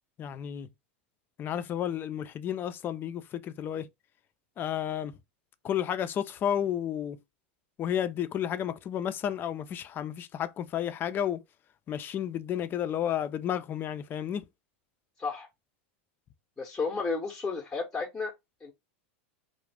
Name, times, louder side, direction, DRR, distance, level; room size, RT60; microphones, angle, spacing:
voice 1, 0.2-0.7 1.4-3.9 4.6-5.1 5.6-7.2 7.8-11.4 11.9-14.4, left 10 dB, 35° left, 0.4 m, -32 dB
voice 2, 16.6-18.3 18.6-18.7, left 4 dB, 10° left, 0.8 m, -32 dB
2.3 x 2.1 x 3.3 m
hypercardioid pair, 105°, 6 cm